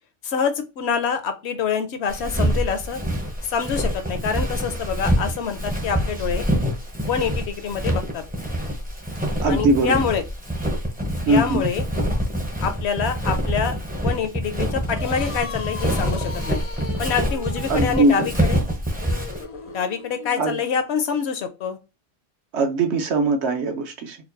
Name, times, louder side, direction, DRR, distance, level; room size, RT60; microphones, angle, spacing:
voice 1, 0.2-3.0 3.5-6.4 7.0-8.2 9.5-10.2 11.3-11.8 12.6-16.6 17.0-18.6 19.7-21.8, left 6 dB, 65° left, 0.8 m, -26 dB
Walk footsteps, 2.1-19.4, equal, 10° right, 0.5 m, -26 dB
voice 2, 9.4-10.0 11.2-11.6 17.7-18.3 20.4-20.6 22.5-24.2, right 2 dB, 70° right, 1.0 m, -21 dB
sound 1, 14.9-20.5, left 4 dB, 40° left, 0.5 m, -38 dB
4.5 x 2.2 x 2.5 m
omnidirectional pair, 1.2 m